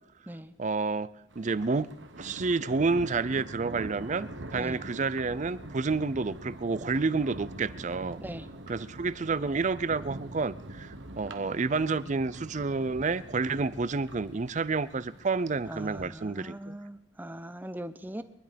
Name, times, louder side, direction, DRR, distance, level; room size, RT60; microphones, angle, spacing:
voice 1, 0.6-1.1 1.4-8.2 8.7-16.8, right 4 dB, 40° right, 17 dB, 0.5 m, -29 dB
Thunder, 1.3-16.1, right 1 dB, 85° right, 1.3 m, -44 dB
voice 2, 15.6-18.2, right 1 dB, 10° right, 11 dB, 0.8 m, -40 dB
23.5 x 11.0 x 5.2 m, 0.86 s
head